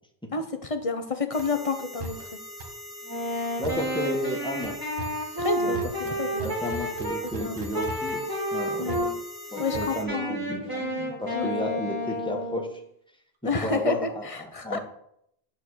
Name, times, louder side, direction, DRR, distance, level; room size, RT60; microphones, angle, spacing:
voice 1, 0.3-2.3 5.4-5.8 6.2-6.5 7.4-7.6 8.8-9.1 9.6-10.4 10.8-11.5 13.4-14.8, left 4 dB, 35° left, 8 dB, 0.9 m, -30 dB
sound 1, 1.3-10.0, right 1 dB, 55° right, 1.7 m, -40 dB
Wind instrument woodwind instrument, 3.0-7.2 7.7-9.1 9.5-12.8, equal, 20° right, 2.0 m, -31 dB
voice 2, 3.6-4.8 5.6-5.8 6.0-8.2 8.5-9.1 9.5-12.8 13.6-14.8, left 1 dB, 5° left, 1 dB, 1.3 m, -33 dB
9.7 x 4.4 x 6.4 m, 0.73 s
omnidirectional pair, 1.0 m